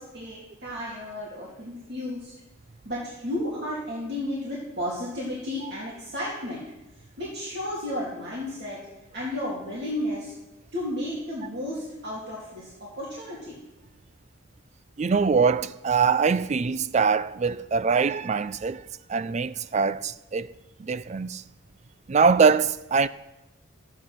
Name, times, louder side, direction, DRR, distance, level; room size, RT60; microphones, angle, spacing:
voice 1, 0.0-2.3 2.8-6.6 7.2-8.8 9.1-10.3 10.7-13.6, left 1 dB, 50° right, 3.0 m, -33 dB
voice 2, 15.0-18.8 19.1-20.5 20.8-21.4 22.1-23.1, right 5 dB, 30° right, 0.3 m, -23 dB
14.0 x 9.4 x 5.9 m
head